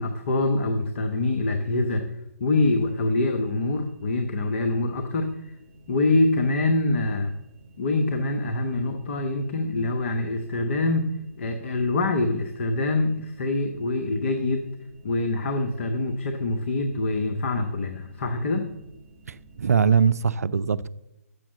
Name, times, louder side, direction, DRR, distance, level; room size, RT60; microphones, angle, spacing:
voice 1, 0.0-2.0 2.4-5.3 5.9-7.3 7.8-11.0 11.4-14.7 15.0-18.7, left 2 dB, 50° left, 1.0 m, -25 dB
sound 1, 2.6-20.0, right 1 dB, 30° right, 2.3 m, -52 dB
voice 2, 19.3-20.9, right 6 dB, 75° right, 0.5 m, -22 dB
7.3 x 6.9 x 7.1 m
figure-of-eight pair, 140°, 8 cm